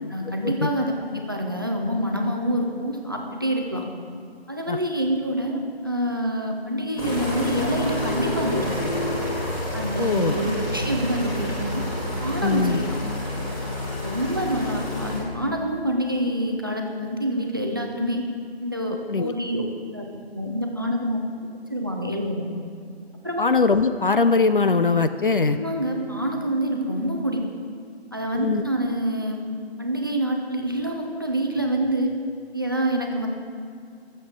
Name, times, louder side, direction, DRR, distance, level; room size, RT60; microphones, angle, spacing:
voice 1, 0.0-3.8 4.5-8.7 9.7-11.8 12.2-12.9 14.0-18.2 18.6-19.7 19.9-20.1 20.3-21.2 21.7-22.4 23.2-23.4 25.5-27.4 28.1-29.4 29.8-32.1 32.5-33.3, right 1 dB, 20° right, 2 dB, 0.6 m, -26 dB
sound 1, 7.0-15.2, left 1 dB, 30° left, 3.2 m, -29 dB
voice 2, 10.0-10.3 12.4-12.8 19.1-19.3 23.4-25.6 28.4-28.6, left 4 dB, 55° left, 10 dB, 0.5 m, -21 dB
19.5 x 7.6 x 3.8 m, 2.3 s
figure-of-eight pair, 160°, 32 cm